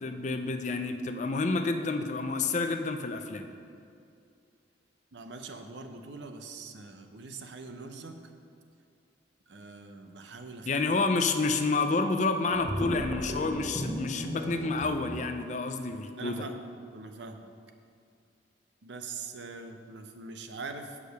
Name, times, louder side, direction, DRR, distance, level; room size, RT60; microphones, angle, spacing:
voice 1, 0.0-3.4 10.7-16.4, left 3 dB, 40° left, 7 dB, 0.5 m, -29 dB
voice 2, 5.1-8.2 9.5-10.7 16.2-16.6 16.9-17.5 18.8-21.0, right 4 dB, 75° right, 6 dB, 0.7 m, -43 dB
sound 1, 12.5-15.0, equal, 25° right, 0.7 m, -35 dB
8.5 x 4.9 x 6.7 m, 2.4 s
head